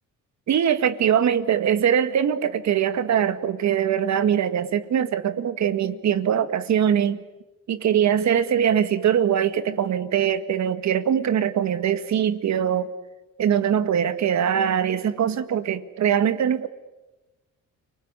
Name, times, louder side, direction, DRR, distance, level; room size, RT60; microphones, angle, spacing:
voice 1, 0.5-7.2 7.7-12.9 13.4-16.7, right 9 dB, 65° right, 11 dB, 1.8 m, -22 dB
30.0 x 20.0 x 9.7 m, 1.1 s
cardioid pair, 90°, 30 cm